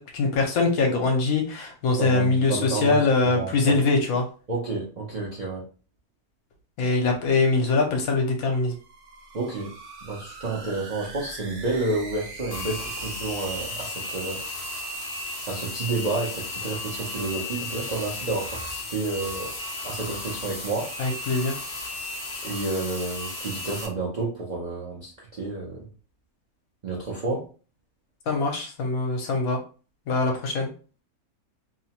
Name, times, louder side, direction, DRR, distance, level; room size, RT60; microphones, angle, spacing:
voice 1, 0.0-4.2 6.8-8.7 21.0-21.5 28.3-29.6 30.1-30.7, left 3 dB, 75° left, 2 dB, 1.1 m, -23 dB
voice 2, 2.0-3.0 3.2-3.8 4.5-5.7 9.3-9.7 10.0-14.4 15.5-19.5 19.8-20.9 22.4-25.9 26.8-27.5, right 3 dB, 50° right, -4 dB, 0.5 m, -30 dB
sound 1, 8.5-13.9, right 2 dB, 80° right, 1.1 m, -42 dB
sound 2, 12.5-23.9, left 2 dB, 50° left, 0.5 m, -34 dB
2.8 x 2.1 x 2.8 m, 0.37 s
omnidirectional pair, 1.6 m